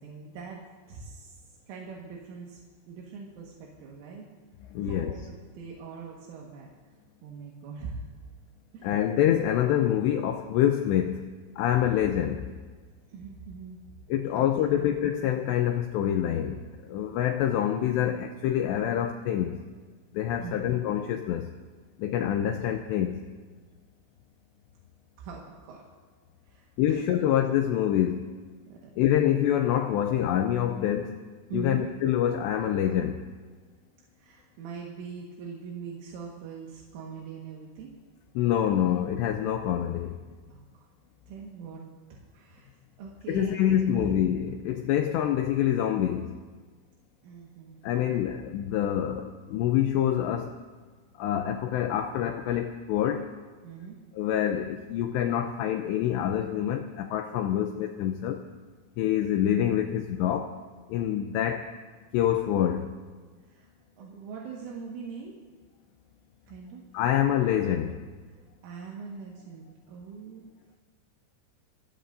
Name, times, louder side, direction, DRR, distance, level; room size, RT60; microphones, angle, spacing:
voice 1, 0.0-1.4 1.7-2.6 2.9-4.3 4.8-6.7 7.2-8.1 8.7-8.9 13.1-13.8 14.4-14.5 14.7-14.9 20.4-20.7 25.2-25.8 26.5-27.0 28.7-28.9 31.5-31.9 34.2-38.0 40.5-40.9 41.3-41.8 42.1-44.1 47.2-48.1 53.6-54.0 63.5-63.7 64.0-65.4 66.5-66.8 68.6-70.5, right 5 dB, 75° right, -2 dB, 4.1 m, -42 dB
voice 2, 4.7-5.1 8.8-11.2 11.6-12.5 14.1-16.6 16.9-19.6 20.1-21.5 22.0-23.2 26.8-28.3 29.0-31.2 31.5-33.2 38.4-40.2 43.3-46.3 47.8-50.6 51.2-53.3 54.1-58.4 59.0-60.5 60.9-61.7 62.1-62.9 66.9-68.0, left 10 dB, 90° left, 6 dB, 2.5 m, -26 dB
28.0 x 18.0 x 2.6 m, 1.5 s
omnidirectional pair, 5.8 m